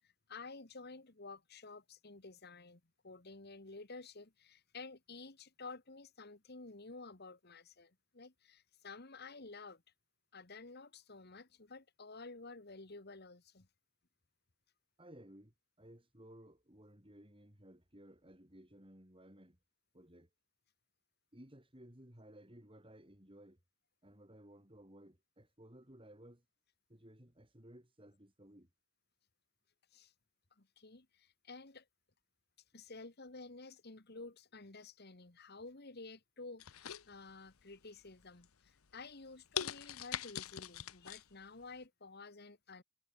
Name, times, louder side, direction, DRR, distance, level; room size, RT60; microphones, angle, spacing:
voice 1, 0.0-9.8 10.3-13.7 29.9-30.1 30.6-31.9 32.7-42.8, left 3 dB, 50° left, 1.7 m, -52 dB
voice 2, 15.0-19.6 19.9-20.3 21.3-23.6 24.0-26.4 26.9-28.7, right 1 dB, 25° right, 4.3 m, -58 dB
sound 1, 36.6-37.6 38.1-38.5 38.9-39.0 39.6-41.2 41.6-41.7, left 9 dB, 90° left, 1.0 m, -42 dB
head